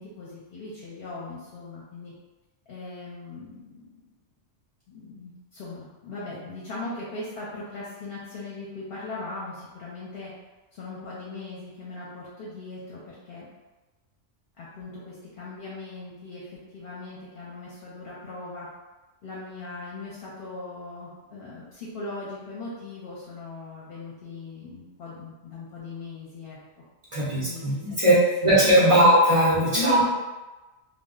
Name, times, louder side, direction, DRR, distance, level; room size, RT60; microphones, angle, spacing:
voice 1, 0.0-2.1 2.7-3.9 4.9-10.3 10.7-13.5 14.6-18.7 19.2-26.6 27.4-28.2 28.9-29.1 29.7-30.1, left 3 dB, 60° left, -6 dB, 0.8 m, -38 dB
voice 2, 27.1-28.1 28.4-30.1, right 1 dB, 35° right, -8 dB, 0.5 m, -19 dB
2.2 x 2.1 x 3.6 m, 1.2 s
omnidirectional pair, 1.2 m